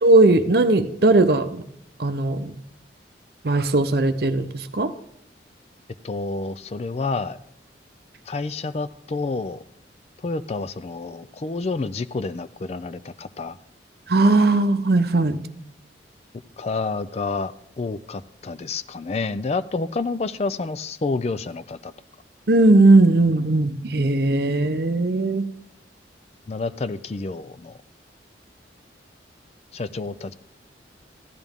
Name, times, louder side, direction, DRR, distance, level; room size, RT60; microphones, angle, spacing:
voice 1, 0.0-1.6 2.0-2.5 3.4-4.9 14.1-15.4 22.5-25.5, right 2 dB, 55° right, 11 dB, 0.7 m, -18 dB
voice 2, 6.0-7.4 8.3-9.6 10.2-13.6 16.6-21.9 26.5-27.8 29.7-30.3, left 3 dB, 35° left, 13 dB, 0.4 m, -29 dB
15.0 x 11.0 x 3.6 m, 0.69 s
head